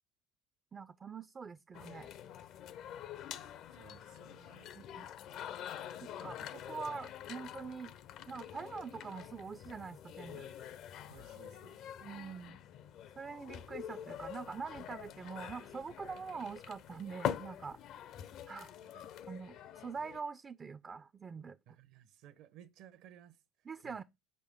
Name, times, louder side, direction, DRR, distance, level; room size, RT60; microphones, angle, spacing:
voice 1, 0.7-2.1 4.7-5.1 6.2-7.9 8.3-10.5 12.0-12.6 13.2-17.8 18.5-18.7 19.3-21.6 23.7-24.0, right 5 dB, 30° right, 0.4 m, -44 dB
sound 1, 1.7-20.2, left 10 dB, 55° left, 0.5 m, -45 dB
voice 2, 3.7-4.7 5.9-6.4 11.1-11.8 18.8-19.2 21.7-24.0, right 9 dB, 65° right, 0.8 m, -59 dB
6.5 x 5.1 x 3.5 m
supercardioid pair, 95°, 0 cm